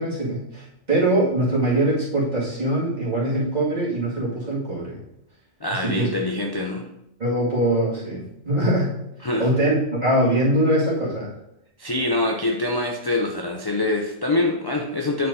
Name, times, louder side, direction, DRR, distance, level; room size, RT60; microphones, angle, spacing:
voice 1, 0.0-5.0 5.8-6.1 7.2-8.9 9.4-11.3, right 1 dB, 35° right, -8 dB, 2.4 m, -22 dB
voice 2, 5.6-6.9 9.2-9.5 11.8-15.3, left 2 dB, 35° left, 1 dB, 0.4 m, -24 dB
9.6 x 4.4 x 2.7 m, 0.82 s
omnidirectional pair, 1.2 m